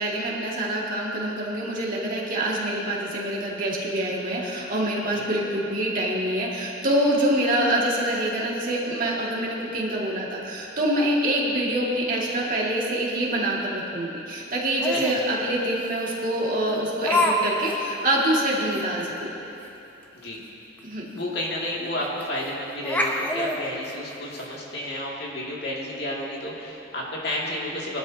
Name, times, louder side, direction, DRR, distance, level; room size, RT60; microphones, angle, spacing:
voice 1, 0.0-19.3 20.8-21.1, right 1 dB, 45° right, -4 dB, 2.1 m, -25 dB
Laughter, 14.8-15.2 16.1-16.2 17.0-17.4 17.6-17.8 18.2-18.3 18.7-18.8 20.8-20.9 21.2-21.3 22.2-22.5 22.8-24.5, left 1 dB, 10° left, 0.8 m, -26 dB
voice 2, 14.9-15.2 20.1-20.4 21.1-28.0, left 1 dB, 55° left, -4 dB, 2.4 m, -31 dB
23.0 x 12.0 x 2.9 m, 2.9 s
head